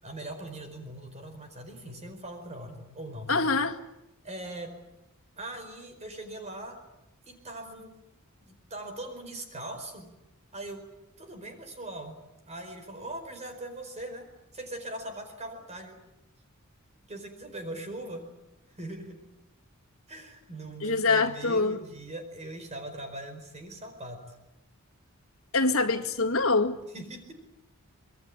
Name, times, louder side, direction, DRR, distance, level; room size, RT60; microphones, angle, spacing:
voice 1, 0.0-3.6 4.2-4.7 5.4-6.8 7.2-8.0 8.4-10.1 10.5-10.9 11.2-12.2 12.5-14.3 14.5-16.0 17.1-18.2 18.8-19.2 20.1-24.2 26.9-27.3, right 1 dB, 30° right, 4.7 m, -41 dB
voice 2, 3.3-3.8 20.8-21.8 25.5-26.8, left 3 dB, 65° left, 1.9 m, -24 dB
26.0 x 21.5 x 8.8 m
head